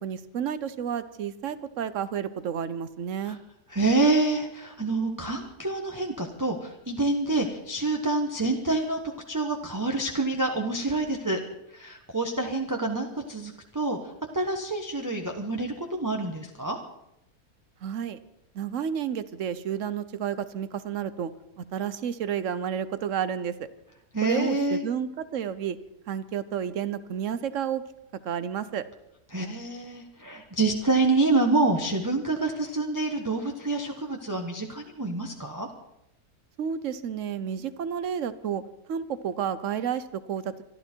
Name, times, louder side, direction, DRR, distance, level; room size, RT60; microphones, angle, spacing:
voice 1, 0.0-3.4 17.8-18.2 18.5-21.3 21.6-23.7 24.2-25.8 26.1-27.8 28.2-28.8 36.6-38.6 38.9-40.6, right 8 dB, 60° right, 14 dB, 1.0 m, -31 dB
voice 2, 3.7-9.0 9.3-11.4 11.7-16.8 24.1-24.8 29.3-35.7, right 2 dB, 15° right, 1 dB, 1.0 m, -27 dB
25.0 x 12.0 x 4.5 m, 0.84 s
omnidirectional pair, 1.7 m